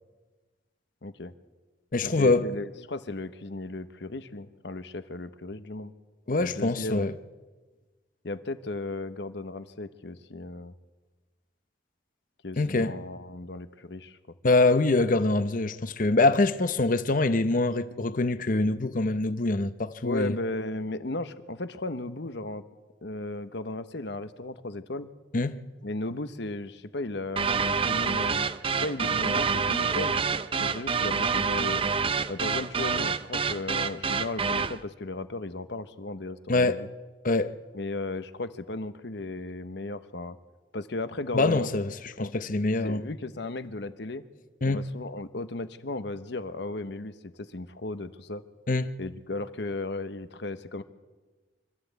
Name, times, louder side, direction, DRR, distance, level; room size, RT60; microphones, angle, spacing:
voice 1, 1.0-1.3 2.0-5.9 6.4-7.0 8.2-10.7 12.4-14.2 20.0-22.6 23.0-25.1 25.8-30.2 30.6-31.8 32.3-36.9 37.7-40.4 40.7-41.7 42.2-42.3 42.8-44.3 44.6-48.4 49.0-50.8, left 2 dB, 65° left, 1.0 m, -35 dB
voice 2, 1.9-2.4 6.3-7.1 12.6-12.9 14.4-20.3 25.3-25.6 36.5-36.8 37.2-37.5 41.3-41.9 42.2-43.0 44.6-44.8 48.7-48.9, left 2 dB, 45° left, 0.8 m, -24 dB
sound 1, 27.4-34.8, right 5 dB, 30° right, 0.6 m, -27 dB
25.0 x 13.5 x 8.2 m
head